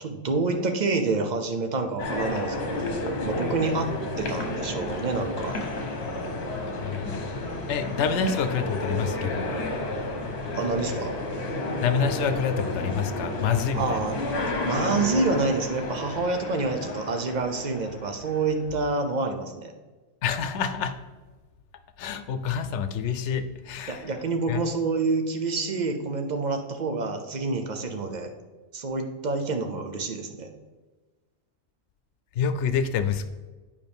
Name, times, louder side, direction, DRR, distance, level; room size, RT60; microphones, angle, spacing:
voice 1, 0.0-3.0 3.2-3.9 4.2-5.5 10.6-11.1 13.7-14.2 14.6-19.7 23.9-28.3 28.7-30.5, right 3 dB, 45° right, 6 dB, 0.8 m, -27 dB
sound 1, 2.0-18.6, left 2 dB, 70° left, 1.3 m, -31 dB
voice 2, 6.8-9.6 11.8-14.0 20.2-20.9 22.0-24.1 24.5-24.6 32.4-33.3, left 7 dB, 85° left, 10 dB, 0.9 m, -27 dB
9.4 x 5.1 x 3.5 m, 1.3 s
omnidirectional pair, 1.2 m